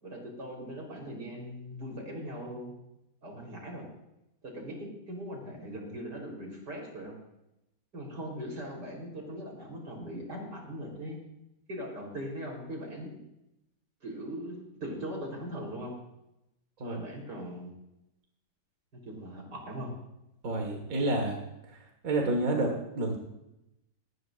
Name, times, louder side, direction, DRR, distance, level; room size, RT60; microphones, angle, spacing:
voice 1, 0.0-2.7 3.2-3.9 4.4-7.2 7.9-11.2 11.7-13.2 14.0-15.9 16.8-17.7 19.0-19.9, equal, 90° right, 0 dB, 4.7 m, -40 dB
voice 2, 20.4-21.4 21.7-21.8 22.0-23.2, right 2 dB, 55° right, 2 dB, 2.2 m, -29 dB
18.5 x 18.0 x 2.6 m, 0.88 s
omnidirectional pair, 1.8 m